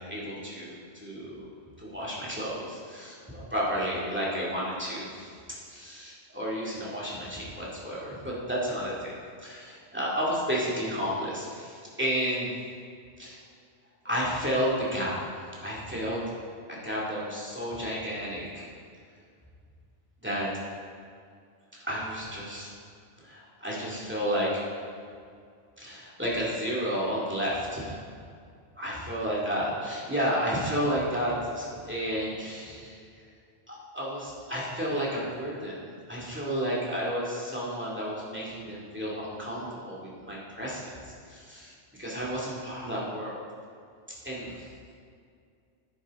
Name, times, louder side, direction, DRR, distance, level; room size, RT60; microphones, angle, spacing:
voice 1, 0.1-1.5 1.8-9.1 9.4-12.5 13.2-13.4 14.0-15.3 15.6-16.2 16.7-18.7 20.2-20.5 21.8-22.7 23.2-24.5 25.8-28.0 28.8-33.0 33.7-35.8 36.1-41.0 41.2-43.4 44.2-44.7, equal, 10° right, -6 dB, 2.3 m, -32 dB
10.5 x 9.3 x 3.7 m, 2.3 s
omnidirectional pair, 1.1 m